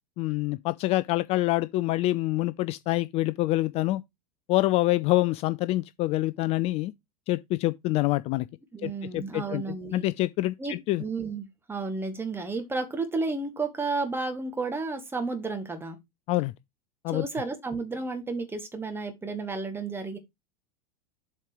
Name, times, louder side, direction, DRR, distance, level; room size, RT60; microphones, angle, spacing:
voice 1, 0.2-4.0 4.5-6.9 7.3-8.5 8.8-9.6 9.9-11.0 16.3-16.5 17.0-17.3, left 17 dB, 30° left, 0.3 m, -26 dB
voice 2, 8.7-10.1 10.6-16.0 17.1-20.2, right 3 dB, 10° right, 1.8 m, -32 dB
7.4 x 4.4 x 5.0 m
figure-of-eight pair, 85°, 20 cm